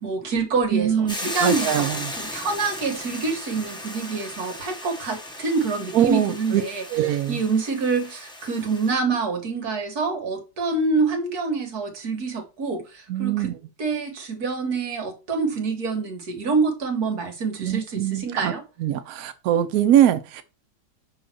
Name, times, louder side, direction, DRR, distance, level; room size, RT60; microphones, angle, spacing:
voice 1, 0.0-18.6, right 4 dB, 50° right, 1.9 m, -26 dB
voice 2, 0.7-2.1 5.9-6.6 6.9-7.4 13.1-13.5 17.6-18.5 18.8-20.5, right 11 dB, 75° right, 0.8 m, -22 dB
Hiss / Boiling, 1.1-8.9, left 1 dB, 5° left, 0.4 m, -36 dB
5.7 x 3.8 x 6.0 m
omnidirectional pair, 2.2 m